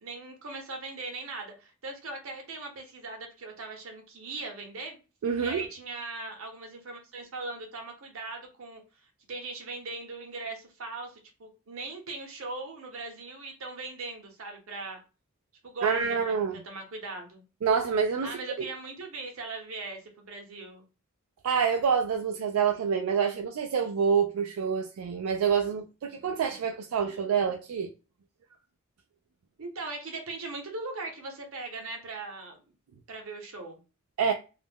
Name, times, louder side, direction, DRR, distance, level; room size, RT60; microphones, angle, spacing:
voice 1, 0.0-5.0 5.4-8.8 9.3-15.0 15.6-16.3 16.6-17.4 18.2-20.8 29.6-32.6 33.1-33.8, right 3 dB, 70° right, 0.8 m, -39 dB
voice 2, 5.2-5.6 15.8-16.6 17.6-18.7 21.4-27.9 34.2-34.3, right 6 dB, 90° right, 0.3 m, -27 dB
2.4 x 2.1 x 3.4 m
head